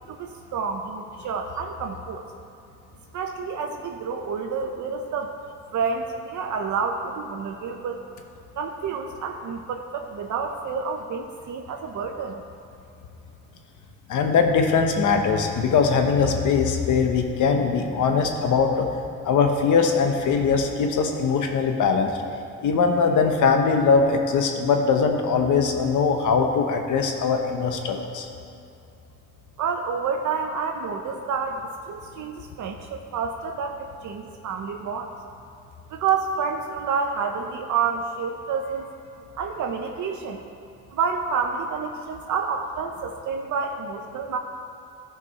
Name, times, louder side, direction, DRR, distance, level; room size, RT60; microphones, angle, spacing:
voice 1, 0.1-2.3 3.1-5.3 5.7-8.0 8.6-12.4 29.6-35.1 35.9-38.8 39.4-40.4 40.9-44.4, right 5 dB, 70° right, 3 dB, 0.8 m, -29 dB
voice 2, 14.1-18.9 19.2-22.2 22.6-28.3, left 5 dB, 70° left, 4 dB, 1.1 m, -21 dB
14.0 x 5.2 x 4.1 m, 2.6 s
cardioid pair, 75°, 31 cm